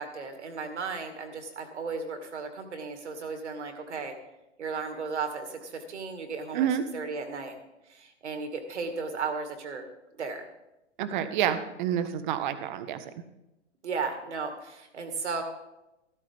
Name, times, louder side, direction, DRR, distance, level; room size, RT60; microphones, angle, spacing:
voice 1, 0.0-4.1 4.6-7.6 7.9-9.9 10.2-10.5 13.8-15.4, right 4 dB, 70° right, 5 dB, 2.2 m, -35 dB
voice 2, 6.5-6.8 11.0-13.0, right 9 dB, 40° right, 10 dB, 1.2 m, -28 dB
13.5 x 13.0 x 3.6 m, 0.94 s
figure-of-eight pair, 110°, 36 cm